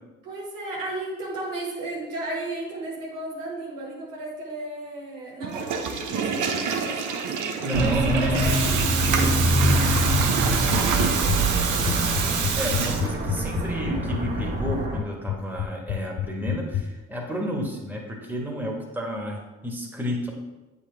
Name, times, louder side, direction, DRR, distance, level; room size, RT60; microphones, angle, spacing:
voice 1, 0.2-12.2 12.8-13.8, right 2 dB, 85° right, -3 dB, 1.6 m, -36 dB
Water tap faucet / Toilet flush, 5.4-13.5, right 6 dB, 70° right, 0.8 m, -27 dB
voice 2, 7.5-8.5 12.5-20.3, equal, 5° right, -1 dB, 1.6 m, -31 dB
sound 1, 7.7-15.0, right 2 dB, 40° right, 1.8 m, -25 dB
sound 2, 8.4-16.8, left 11 dB, 55° left, 0.5 m, -29 dB
7.9 x 4.1 x 3.5 m, 1.1 s
hypercardioid pair, 45°, 32 cm